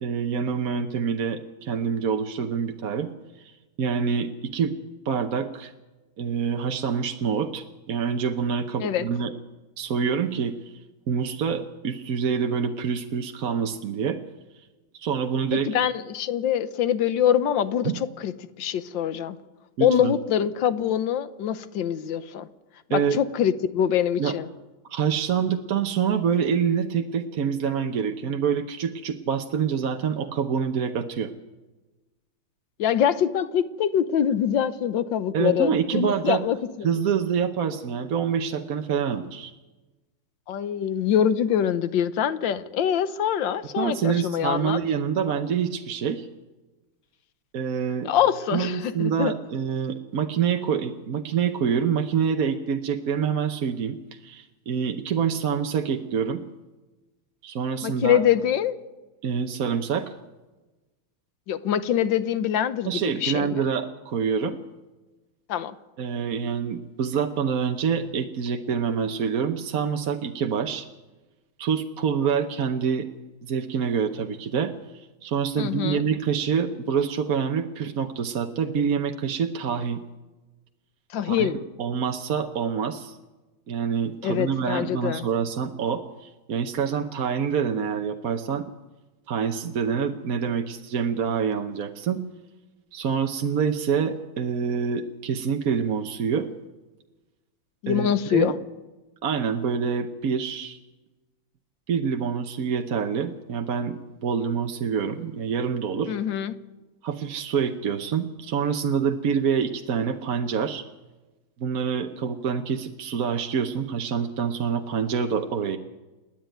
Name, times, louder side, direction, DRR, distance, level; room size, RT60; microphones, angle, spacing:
voice 1, 0.0-3.1 3.4-4.7 5.0-5.7 6.2-9.3 9.8-10.5 11.1-14.2 14.9-15.7 17.8-17.9 19.8-20.1 22.9-23.2 24.2-24.3 24.9-31.3 35.3-36.4 36.8-39.5 43.8-46.3 47.5-48.1 48.5-54.0 54.2-56.4 57.4-58.2 59.2-60.1 62.9-64.6 66.0-70.9 71.6-73.1 73.4-80.0 81.2-81.5 81.8-83.2 83.7-88.7 89.3-92.2 92.9-96.5 97.9-98.6 99.2-100.8 101.9-106.2 107.0-110.8 111.6-115.8, right 7 dB, 55° right, 5 dB, 1.2 m, -26 dB
voice 2, 15.7-18.3 18.6-19.4 19.8-22.5 22.9-24.5 32.8-36.9 40.5-44.8 48.0-49.3 57.8-58.8 61.5-63.6 65.5-65.8 75.6-76.0 81.1-81.6 84.2-85.2 97.8-98.5 106.1-106.6, left 9 dB, 70° left, 14 dB, 1.5 m, -24 dB
28.5 x 10.5 x 9.1 m, 1.1 s
omnidirectional pair, 2.2 m